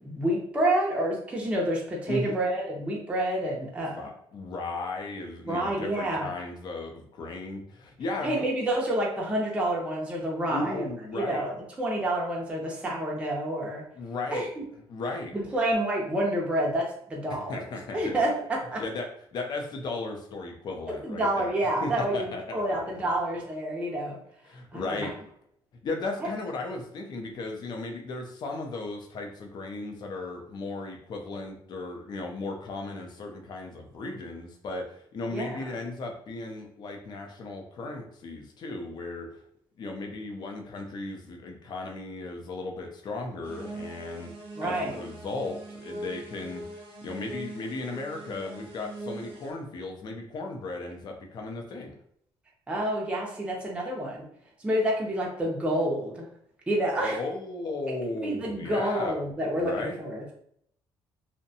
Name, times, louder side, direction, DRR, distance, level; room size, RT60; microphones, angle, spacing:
voice 1, 0.0-4.1 5.4-6.3 8.2-10.9 11.1-13.8 14.3-14.6 15.3-17.6 17.9-18.8 21.0-24.2 24.7-25.1 26.2-26.3 35.3-35.7 44.6-45.0 52.7-54.3 54.6-56.2 56.7-57.2 58.2-60.3, right 1 dB, 10° right, -2 dB, 0.5 m, -28 dB
voice 2, 4.0-8.5 10.5-11.4 14.0-14.5 14.9-15.3 17.3-18.2 18.8-21.5 21.8-23.0 24.5-25.1 25.8-39.3 39.8-44.3 44.6-45.6 45.8-51.9 57.0-59.1 59.6-60.0, left 3 dB, 50° left, 3 dB, 0.5 m, -36 dB
sound 1, 43.4-49.5, right 1 dB, 70° right, 0.6 m, -41 dB
2.6 x 2.1 x 2.6 m, 0.68 s
cardioid pair, 145°, 10 cm